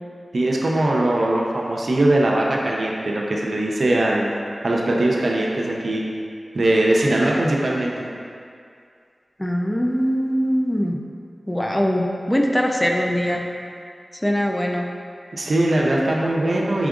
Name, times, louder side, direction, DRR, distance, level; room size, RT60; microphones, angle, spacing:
voice 1, 0.3-4.3 4.6-6.0 6.5-8.1 15.3-16.9, right 1 dB, 75° right, -2 dB, 0.5 m, -20 dB
voice 2, 9.4-11.0 11.5-13.4 14.1-14.9, equal, 15° left, 1 dB, 0.4 m, -22 dB
4.9 x 3.5 x 2.4 m, 2.3 s
cardioid pair, 40°, 0 cm